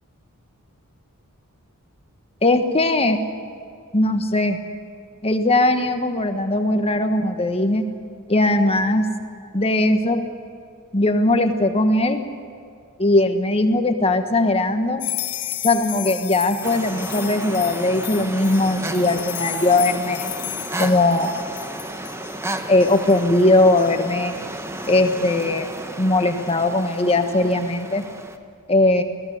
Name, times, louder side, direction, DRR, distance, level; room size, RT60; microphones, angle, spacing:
voice 1, 2.4-3.2 3.9-4.6 5.2-7.8 8.3-9.1 9.5-10.2 10.9-12.3 13.0-15.0 15.6-20.3 20.8-21.3 22.7-24.3 24.9-25.7 26.0-28.0 28.7-29.0, left 2 dB, 25° left, 7 dB, 1.4 m, -19 dB
sound 1, 15.0-25.4, left 14 dB, 85° left, 1.1 m, -34 dB
sound 2, 16.6-28.4, right 1 dB, 10° right, 1.0 m, -33 dB
24.0 x 17.0 x 7.9 m, 2.3 s
head